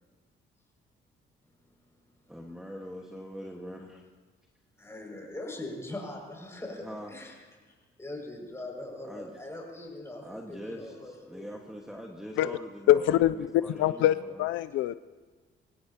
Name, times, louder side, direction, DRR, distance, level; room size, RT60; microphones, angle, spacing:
voice 1, 2.3-4.0 6.8-7.1 9.0-9.3 10.2-13.2 13.5-14.4, equal, 5° right, 1.5 m, -42 dB
voice 2, 4.8-7.3 8.0-11.5, left 1 dB, 15° left, 6.1 m, -41 dB
voice 3, 12.9-15.0, left 13 dB, 85° left, 0.4 m, -24 dB
24.0 x 17.0 x 2.9 m
cardioid pair, 90°, 20 cm